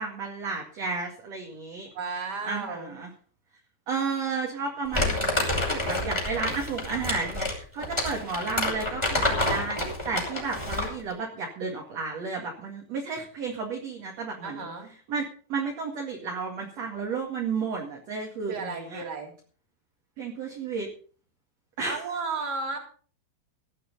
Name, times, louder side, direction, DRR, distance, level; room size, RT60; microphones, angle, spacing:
voice 1, 0.0-1.9 2.4-3.1 3.9-14.7 15.1-15.2 15.5-19.0 20.2-20.9 21.8-22.0, right 4 dB, 45° right, 1 dB, 2.7 m, -32 dB
voice 2, 1.9-3.0 14.4-14.9 18.5-19.3 21.8-22.8, right 4 dB, 25° right, 1 dB, 3.5 m, -33 dB
Crumpling crinkling, 4.9-11.0, left 1 dB, 5° left, 5.3 m, -28 dB
17.5 x 11.5 x 4.1 m, 0.42 s
omnidirectional pair, 5.0 m